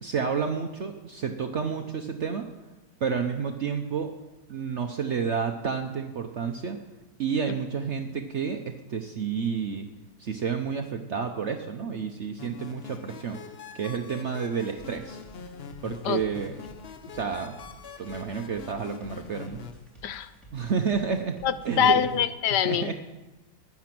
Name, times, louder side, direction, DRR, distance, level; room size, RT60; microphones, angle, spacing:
voice 1, 0.0-2.5 3.0-4.1 4.5-6.8 7.2-9.9 10.2-13.4 13.7-15.2 15.8-16.6 17.1-17.6 18.0-19.6 20.5-21.4 21.6-22.1 22.5-22.9, right 6 dB, 60° right, 5 dB, 0.8 m, -30 dB
sound 1, 12.4-19.7, left 6 dB, 55° left, 0.7 m, -43 dB
sound 2, 14.8-22.3, right 2 dB, ahead, 3.0 m, -52 dB
voice 2, 21.4-22.9, left 9 dB, 75° left, 14 dB, 1.1 m, -24 dB
13.5 x 9.4 x 6.0 m, 1.1 s
omnidirectional pair, 2.0 m